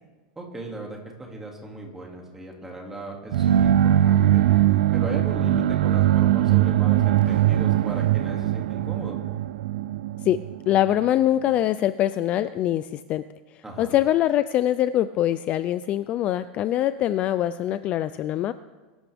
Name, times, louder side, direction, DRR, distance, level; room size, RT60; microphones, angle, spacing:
voice 1, 0.4-4.4 4.9-9.2 13.6-14.0, right 2 dB, 10° right, 0 dB, 2.4 m, -37 dB
sound 1, 3.3-11.1, right 12 dB, 90° right, 0.5 m, -21 dB
voice 2, 10.7-13.2 13.8-18.5, left 12 dB, 30° left, 13 dB, 0.3 m, -23 dB
23.5 x 12.5 x 3.5 m, 1.3 s
supercardioid pair, 160°, 5 cm